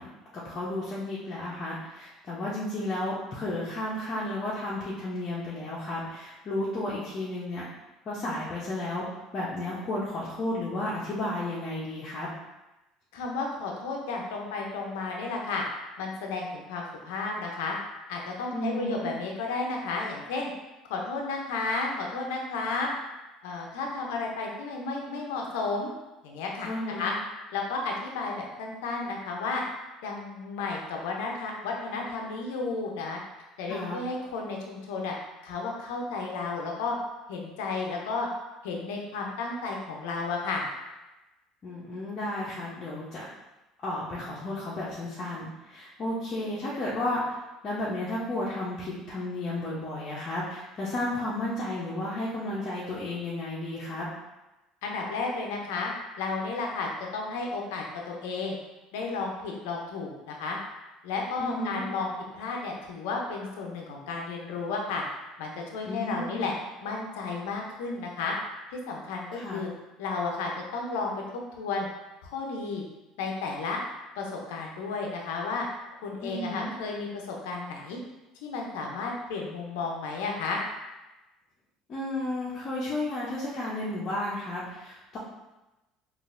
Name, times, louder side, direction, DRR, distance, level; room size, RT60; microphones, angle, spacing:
voice 1, 0.0-7.6 8.1-9.0 9.3-12.3 18.5-19.1 26.6-27.1 33.7-34.0 41.6-43.3 43.8-54.1 61.4-61.8 65.8-66.5 69.3-69.6 76.2-76.7 81.9-85.2, left 1 dB, 45° left, -8 dB, 0.8 m, -33 dB
voice 2, 13.1-15.6 16.0-17.8 18.1-20.5 20.9-22.9 23.4-25.9 26.2-26.7 27.0-27.1 27.5-29.6 30.0-33.2 33.6-35.1 35.4-37.0 37.3-38.3 38.6-40.6 54.8-58.6 58.9-60.6 61.0-65.0 65.4-66.5 66.8-68.4 68.7-69.7 70.0-71.9 72.2-72.8 73.2-73.8 74.2-75.7 76.0-78.0 78.4-80.6, left 4 dB, 85° left, 0 dB, 0.6 m, -33 dB
3.9 x 2.5 x 2.5 m, 1.0 s
supercardioid pair, 90°, 0 cm